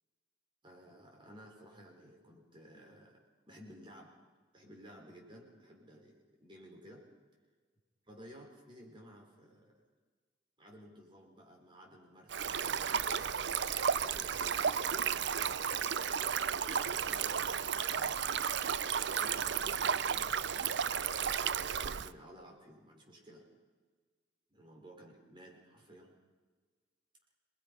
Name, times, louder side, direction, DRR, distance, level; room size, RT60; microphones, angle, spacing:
voice 1, 0.6-4.1 4.5-7.0 8.1-9.8 10.6-13.6 14.0-15.8 16.5-18.5 19.0-23.4 24.5-26.2, equal, 25° right, 0 dB, 5.4 m, -55 dB
Stream, 12.3-22.1, right 7 dB, 60° right, 0.6 m, -33 dB
27.0 x 21.5 x 5.7 m, 1.5 s
head